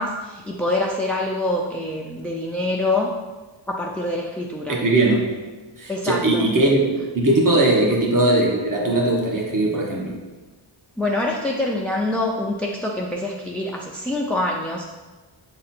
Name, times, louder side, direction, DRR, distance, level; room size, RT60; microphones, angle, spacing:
voice 1, 0.0-3.1 3.7-4.8 5.9-6.5 7.8-7.9 11.0-14.9, left 2 dB, 5° left, -2 dB, 0.5 m, -25 dB
voice 2, 4.7-5.3 5.8-10.1, right 2 dB, 40° right, -1 dB, 1.2 m, -19 dB
7.0 x 3.8 x 4.3 m, 1.3 s
wide cardioid pair, 125°, 49 cm